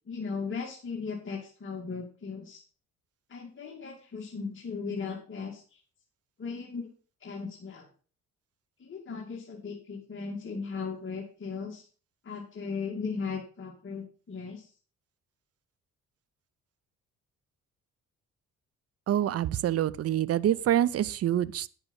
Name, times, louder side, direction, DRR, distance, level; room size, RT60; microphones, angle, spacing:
voice 1, 0.1-2.6 3.3-5.8 6.4-6.9 7.2-7.9 8.8-11.8 12.2-14.7, left 5 dB, 40° left, 2.3 m, -37 dB
voice 2, 19.1-21.7, right 11 dB, 55° right, 0.6 m, -26 dB
9.6 x 7.1 x 5.4 m
cardioid pair, 90°, 30 cm